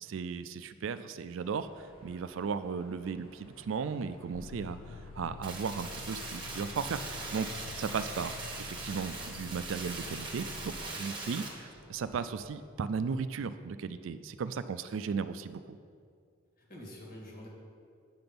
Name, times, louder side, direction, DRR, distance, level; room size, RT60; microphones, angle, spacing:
voice 1, 0.0-4.8 5.2-7.5 7.8-10.7 11.0-15.8, right 5 dB, 70° right, 12 dB, 0.4 m, -36 dB
Mechanisms, 1.4-12.4, left 1 dB, 85° left, 1.6 m, -57 dB
sound 1, 4.3-10.8, left 4 dB, 60° left, 0.4 m, -47 dB
sound 2, 5.4-11.5, right 3 dB, 25° right, 1.2 m, -41 dB
voice 2, 10.7-11.0 16.6-17.5, left 1 dB, 45° left, -2 dB, 1.8 m, -47 dB
8.7 x 6.0 x 5.3 m, 2.2 s
head